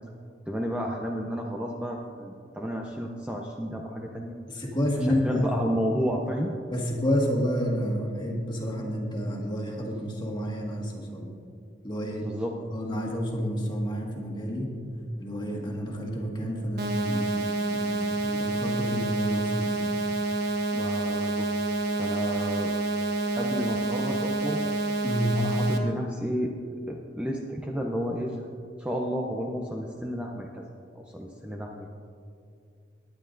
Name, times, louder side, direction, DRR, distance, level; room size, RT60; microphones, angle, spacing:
voice 1, 0.5-4.3 5.0-6.5 12.2-12.6 20.7-21.5 22.0-22.7 23.4-24.6 25.2-26.5 26.9-28.4 28.8-30.6 30.9-31.9, equal, 5° right, 0 dB, 0.6 m, -32 dB
voice 2, 4.5-5.5 6.7-11.3 11.8-12.3 12.7-14.7 15.2-20.0 25.0-25.4, equal, 25° left, -1 dB, 1.7 m, -30 dB
sound 1, 16.8-25.8, right 2 dB, 65° right, 1.2 m, -28 dB
19.0 x 9.7 x 2.6 m, 2.4 s
head